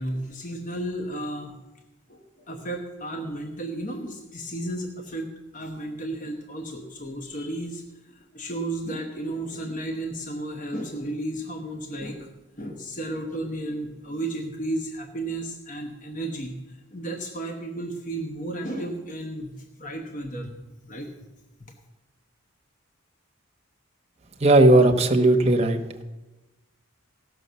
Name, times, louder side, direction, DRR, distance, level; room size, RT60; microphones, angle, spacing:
voice 1, 0.0-1.6 2.1-5.3 5.5-7.8 8.1-12.3 12.6-19.5 19.8-20.5 20.9-21.1, right 1 dB, 35° left, 3 dB, 1.1 m, -33 dB
voice 2, 24.4-26.0, right 2 dB, 30° right, 4 dB, 1.0 m, -17 dB
16.0 x 6.3 x 6.8 m, 1.1 s
head